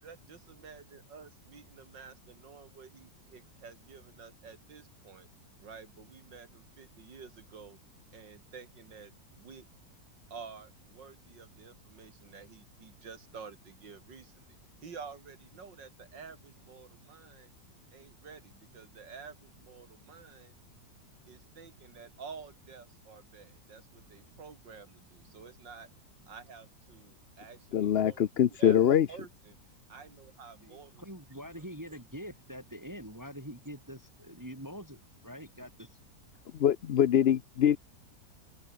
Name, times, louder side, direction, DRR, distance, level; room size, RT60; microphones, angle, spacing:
voice 1, 0.0-5.3 5.6-7.8 8.1-9.7 10.3-14.6 14.8-17.5 17.9-20.5 21.3-25.9 26.3-28.3 28.6-28.8 29.1-29.6 29.9-31.0 31.5-32.0, right 5 dB, 90° right, 3.2 m, -50 dB
voice 2, 27.7-29.1 36.5-37.8, left 10 dB, 80° left, 0.5 m, -24 dB
voice 3, 30.6-36.0, equal, 10° right, 3.1 m, -45 dB
omnidirectional pair, 1.9 m